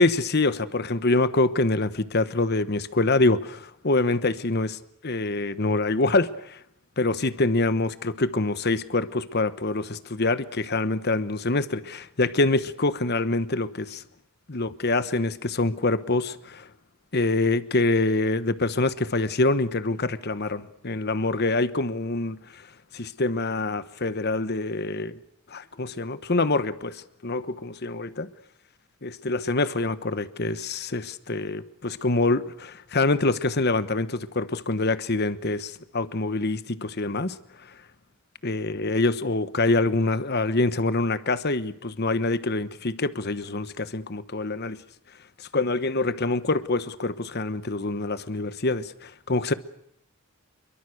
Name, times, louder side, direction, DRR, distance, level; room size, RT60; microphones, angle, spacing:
voice 1, 0.0-4.8 5.0-6.6 7.0-14.0 14.5-16.7 17.1-22.7 22.9-25.2 25.5-28.3 29.0-37.3 38.4-44.8 45.5-49.5, left 2 dB, 50° left, 1.1 m, -25 dB
27.5 x 23.0 x 6.5 m
head